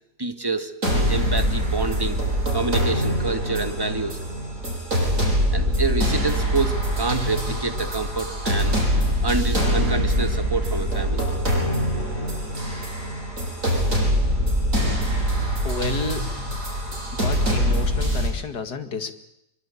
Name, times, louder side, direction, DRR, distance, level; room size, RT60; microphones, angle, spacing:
voice 1, 0.2-0.7 1.1-2.2 2.5-4.2 5.5-8.8 9.2-11.3, right 3 dB, 15° right, 7 dB, 2.0 m, -27 dB
sound 1, 0.8-18.3, equal, 50° right, 8.0 m, -23 dB
voice 2, 15.6-16.3 17.2-19.1, left 4 dB, 75° left, 8 dB, 2.7 m, -31 dB
24.0 x 24.0 x 8.6 m, 0.82 s
omnidirectional pair, 1.8 m